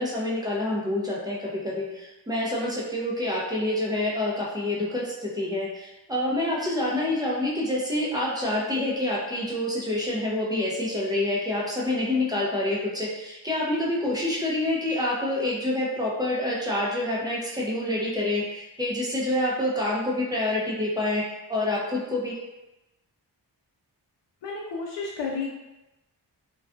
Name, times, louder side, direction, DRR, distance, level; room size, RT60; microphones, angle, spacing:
voice 1, 0.0-21.2 21.5-22.3, left 1 dB, 10° right, -6 dB, 0.5 m, -27 dB
voice 2, 24.4-25.5, left 4 dB, 80° left, -3 dB, 0.5 m, -31 dB
2.4 x 2.2 x 2.4 m, 1.0 s
wide cardioid pair, 120°, 42 cm